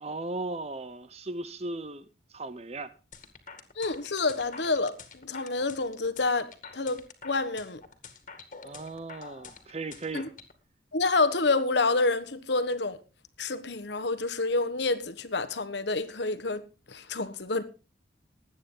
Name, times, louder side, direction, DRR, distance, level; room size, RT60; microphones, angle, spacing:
voice 1, 0.0-2.9 8.6-10.3, right 2 dB, 35° right, 0.8 m, -37 dB
sound 1, 3.1-10.5, left 5 dB, 40° left, 2.1 m, -47 dB
voice 2, 3.8-7.8 10.1-10.2 10.9-13.0 13.4-16.6 16.9-17.6, left 3 dB, 65° left, 1.3 m, -28 dB
20.0 x 9.1 x 3.8 m
head